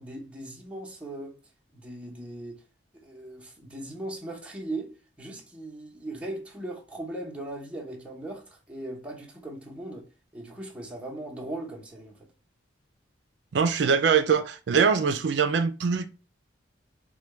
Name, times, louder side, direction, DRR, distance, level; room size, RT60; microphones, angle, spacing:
voice 1, 0.0-1.4 1.7-2.6 3.0-12.3, right 1 dB, 5° right, 0.8 m, -39 dB
voice 2, 13.5-16.1, right 6 dB, 65° right, 0.4 m, -23 dB
4.5 x 2.2 x 3.1 m
head